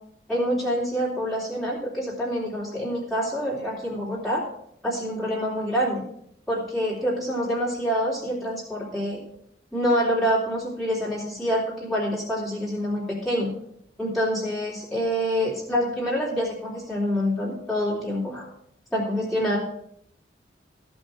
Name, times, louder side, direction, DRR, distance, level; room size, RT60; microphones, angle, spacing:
voice 1, 0.3-4.4 4.8-6.0 6.5-9.2 9.7-13.5 14.0-18.5 18.9-19.6, equal, ahead, -8 dB, 3.4 m, -26 dB
15.0 x 5.4 x 5.9 m, 0.71 s
head